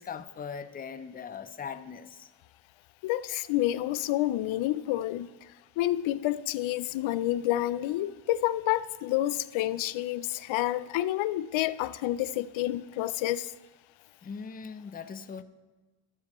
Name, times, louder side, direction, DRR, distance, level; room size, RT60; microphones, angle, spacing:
voice 1, 0.0-2.3 14.2-15.4, left 6 dB, 20° left, 0.4 m, -40 dB
voice 2, 3.0-5.4 5.8-13.5, left 14 dB, 85° left, 0.5 m, -29 dB
12.5 x 12.0 x 3.0 m
cardioid pair, 115°, 45 cm